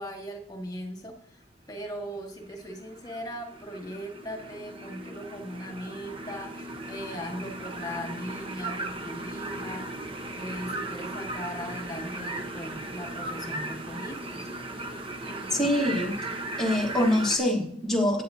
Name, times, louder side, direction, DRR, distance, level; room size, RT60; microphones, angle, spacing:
voice 1, 0.0-1.4 1.7-9.9 10.3-14.5 15.3-15.7, equal, 20° left, 2 dB, 1.6 m, -39 dB
sound 1, 2.3-17.4, right 2 dB, 30° right, 1.0 m, -37 dB
voice 2, 15.5-16.1 16.6-18.2, left 1 dB, ahead, -4 dB, 1.5 m, -24 dB
17.0 x 9.2 x 2.8 m, 0.69 s
head